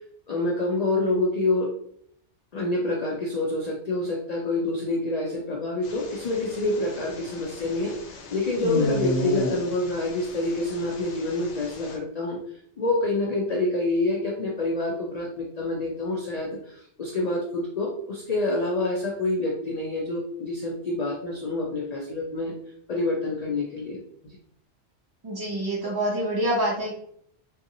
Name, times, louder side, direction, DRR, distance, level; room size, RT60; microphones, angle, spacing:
voice 1, 0.3-1.7 2.5-7.9 8.3-12.4 12.8-22.5 22.9-24.4, left 2 dB, 65° left, -1 dB, 0.4 m, -27 dB
sound 1, 5.8-12.0, left 1 dB, 80° left, 0.9 m, -33 dB
voice 2, 25.2-26.9, right 1 dB, 40° right, -5 dB, 0.3 m, -26 dB
2.7 x 2.3 x 2.6 m, 0.67 s
omnidirectional pair, 1.2 m